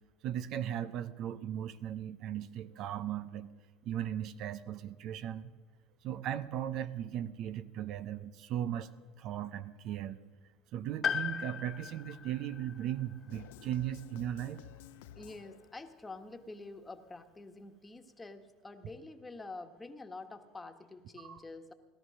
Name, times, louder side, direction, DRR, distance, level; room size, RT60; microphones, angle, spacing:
voice 1, 0.2-3.5 3.8-5.5 6.0-8.9 9.2-10.2 10.7-14.6 21.2-21.4, right 11 dB, 60° right, 14 dB, 0.7 m, -37 dB
Piano, 11.0-14.9 15.2-15.3 16.4-16.5, left 7 dB, 35° left, 1.4 m, -39 dB
sound 1, 13.3-16.0, left 12 dB, 85° left, 0.6 m, -53 dB
voice 2, 15.1-21.7, left 3 dB, 15° left, 6 dB, 1.5 m, -47 dB
18.0 x 12.5 x 6.4 m, 1.4 s
supercardioid pair, 95°, 0 cm